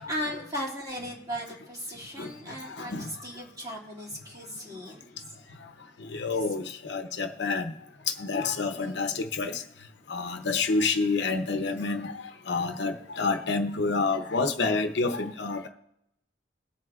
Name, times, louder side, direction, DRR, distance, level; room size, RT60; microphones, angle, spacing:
voice 1, 0.0-5.0 8.7-9.0, equal, 20° right, 2.3 m, -37 dB
voice 2, 2.8-3.1 6.1-7.7 8.1-9.6 10.1-12.1 12.5-15.7, left 4 dB, 65° left, 0.7 m, -28 dB
21.0 x 7.8 x 2.4 m
head